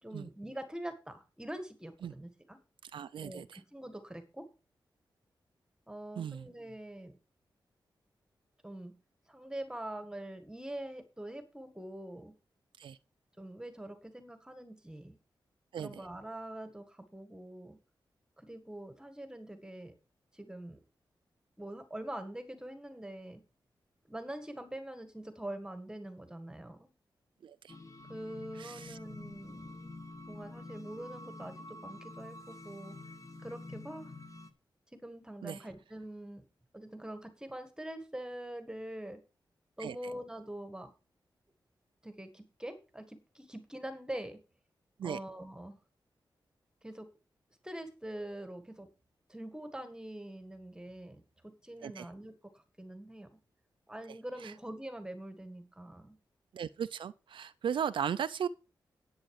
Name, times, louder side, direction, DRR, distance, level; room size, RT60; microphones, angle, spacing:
voice 1, 0.0-2.6 3.2-4.4 5.9-7.1 8.6-8.9 9.3-12.3 13.4-15.1 15.8-17.8 18.4-19.9 20.3-20.8 21.6-23.4 24.1-26.9 28.1-29.9 30.3-33.0 33.4-34.1 35.0-36.4 36.7-39.2 39.8-40.9 42.0-44.4 45.0-45.8 46.8-47.1 47.6-48.9 49.3-51.2 51.6-53.4 53.9-56.2, right 1 dB, 10° right, 1.7 m, -44 dB
voice 2, 2.8-3.6 6.2-6.5 12.8-13.0 15.7-15.9 27.4-27.7 28.6-29.0 35.4-35.6 39.8-39.9 45.0-45.2 51.8-52.1 54.4-54.5 56.5-58.5, right 8 dB, 85° right, 0.5 m, -37 dB
sound 1, 27.7-34.5, left 2 dB, 40° left, 1.3 m, -48 dB
10.5 x 8.7 x 4.8 m
wide cardioid pair, 105°, 8 cm